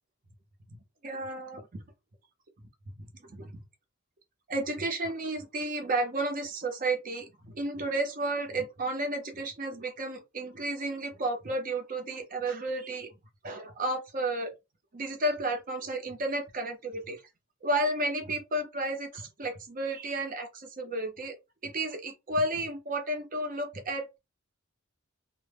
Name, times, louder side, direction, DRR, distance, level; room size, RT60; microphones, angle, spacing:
voice 1, 1.0-1.6 3.3-3.5 4.5-7.3 7.5-13.1 13.4-14.5 14.9-17.2 17.6-21.3 21.6-24.2, right 1 dB, 40° right, 0.6 m, -32 dB
2.0 x 2.0 x 3.3 m
head